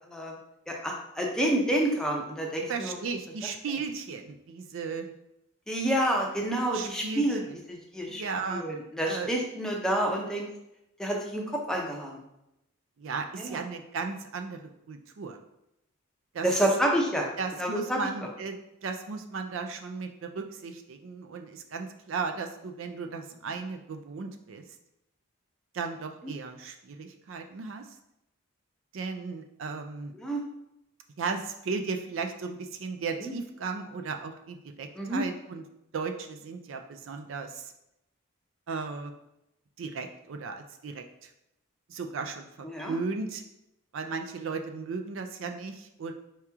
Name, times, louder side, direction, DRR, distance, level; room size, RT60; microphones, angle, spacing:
voice 1, 0.7-3.0 5.7-7.4 7.7-8.2 8.5-10.5 11.0-12.2 13.4-13.6 16.4-17.3 17.6-18.0 26.2-26.3 30.1-30.4 33.2-33.3 34.9-35.2 42.6-43.0, right 1 dB, 5° left, -1 dB, 0.6 m, -28 dB
voice 2, 2.7-5.1 6.7-7.6 8.1-8.7 9.1-9.3 13.0-15.4 16.3-16.5 17.4-18.6 18.8-24.6 25.7-27.8 28.9-30.1 31.2-35.6 35.9-37.7 38.7-39.1 39.8-41.3 41.9-43.4 43.9-46.1, right 4 dB, 65° right, 5 dB, 0.4 m, -36 dB
4.7 x 2.9 x 3.5 m, 0.86 s
head